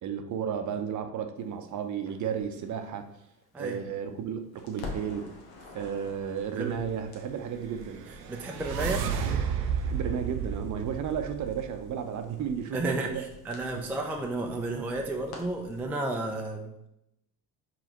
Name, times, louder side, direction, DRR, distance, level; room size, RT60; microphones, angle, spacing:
voice 1, 0.0-3.1 3.6-5.3 5.7-8.1 9.8-13.2 13.7-13.9, right 8 dB, 40° right, 7 dB, 0.6 m, -33 dB
Crackle, 2.1-4.2 4.5-15.9, left 3 dB, 70° left, 1.1 m, -48 dB
sound 1, 7.7-11.9, right 7 dB, 85° right, 0.6 m, -32 dB
voice 2, 8.3-9.1 12.7-16.9, right 2 dB, 5° right, 2 dB, 0.3 m, -32 dB
4.9 x 3.2 x 2.9 m, 0.82 s
hypercardioid pair, 65°, 46 cm